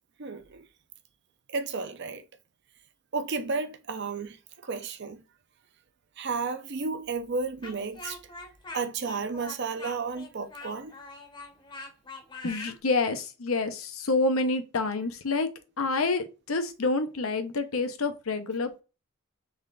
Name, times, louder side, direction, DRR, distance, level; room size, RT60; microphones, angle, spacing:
voice 1, 0.2-0.6 1.5-2.2 3.1-4.4 4.6-5.2 6.2-8.2 8.7-10.9, right 4 dB, 55° right, 0.6 m, -32 dB
Speech, 7.6-12.8, left 3 dB, 20° left, 0.8 m, -43 dB
voice 2, 12.4-15.5 15.8-18.8, left 3 dB, 85° left, 0.8 m, -28 dB
3.6 x 3.3 x 3.8 m
head